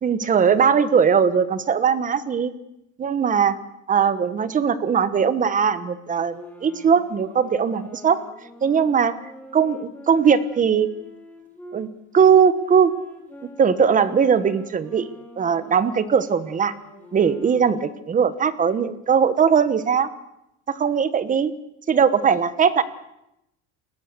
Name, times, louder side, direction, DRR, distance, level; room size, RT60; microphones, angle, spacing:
voice 1, 0.0-2.5 3.0-3.6 3.9-8.2 8.6-9.1 9.5-10.9 11.7-11.9 12.1-12.9 13.6-15.1 15.4-16.7 17.1-20.1 20.7-21.5 21.9-22.8, right 7 dB, 25° right, 13 dB, 1.2 m, -19 dB
sound 1, 6.1-11.8 12.5-17.9, equal, 5° left, 3.5 m, -44 dB
29.5 x 21.0 x 6.9 m, 0.84 s
cardioid pair, 170°, 33 cm